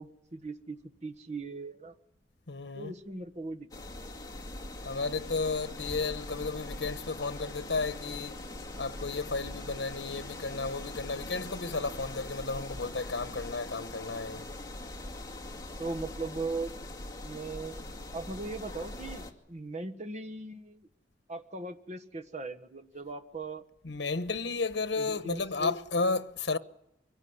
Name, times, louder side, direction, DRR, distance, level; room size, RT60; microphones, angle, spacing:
voice 1, 0.0-1.9 2.7-3.7 4.0-4.1 15.8-16.7 17.2-17.8 18.1-20.9 21.3-23.6 25.0-25.7, right 3 dB, 40° right, 1.4 m, -39 dB
voice 2, 2.5-2.9 4.8-8.4 8.8-14.4 23.8-26.6, left 3 dB, 80° left, 1.1 m, -33 dB
sound 1, 3.7-19.3, left 2 dB, 20° left, 2.2 m, -42 dB
24.0 x 16.5 x 9.6 m
head